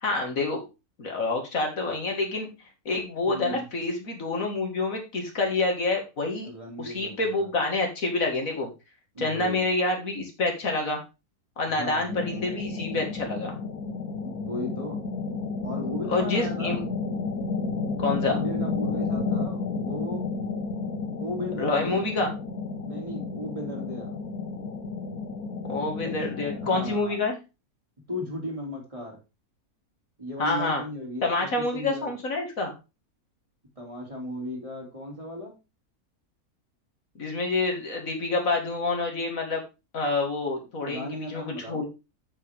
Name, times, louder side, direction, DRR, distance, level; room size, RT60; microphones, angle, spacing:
voice 1, 0.0-0.6 1.0-2.5 2.9-6.5 6.8-8.7 9.2-11.0 11.6-13.6 16.1-16.8 18.0-18.4 21.6-22.3 25.7-27.4 30.4-30.8 31.2-32.7 37.2-39.6 39.9-41.9, left 3 dB, 65° left, 2 dB, 2.4 m, -27 dB
voice 2, 3.2-3.7 6.4-7.5 9.1-9.6 11.7-12.1 14.2-15.0 15.6-16.9 18.2-20.3 21.2-22.1 22.9-24.2 26.0-26.1 26.6-27.2 28.1-29.2 30.2-32.2 33.8-35.5 40.8-41.9, left 1 dB, 20° right, -1 dB, 2.9 m, -36 dB
sound 1, 12.1-27.0, left 4 dB, 90° left, 1.8 m, -32 dB
8.4 x 7.6 x 3.6 m, 0.28 s
omnidirectional pair, 1.5 m